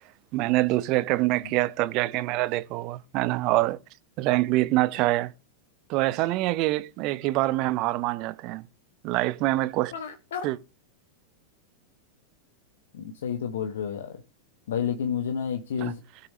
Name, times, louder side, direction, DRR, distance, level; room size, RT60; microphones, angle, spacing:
voice 1, 0.3-3.8 4.2-5.3 5.9-8.6 9.0-9.9 10.4-10.6 15.8-15.9, right 18 dB, 40° right, 0.7 m, -25 dB
voice 2, 9.9-10.4 12.9-14.2 14.7-16.0, left 7 dB, 60° left, 1.2 m, -30 dB
20.0 x 6.9 x 3.1 m
figure-of-eight pair, 90°, 0 cm